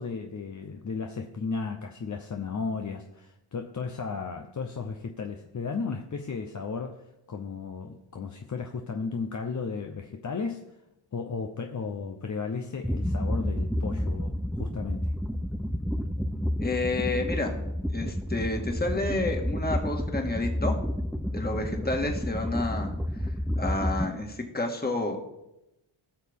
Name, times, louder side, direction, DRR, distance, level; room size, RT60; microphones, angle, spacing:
voice 1, 0.0-10.7 11.1-15.1, left 5 dB, 35° left, 4 dB, 0.8 m, -34 dB
sound 1, 12.8-24.1, equal, ahead, 0.5 m, -30 dB
voice 2, 16.6-17.6 17.9-20.8 21.3-25.2, left 2 dB, 20° left, 2 dB, 1.9 m, -30 dB
18.5 x 6.5 x 3.6 m, 0.91 s
cardioid pair, 90°, 49 cm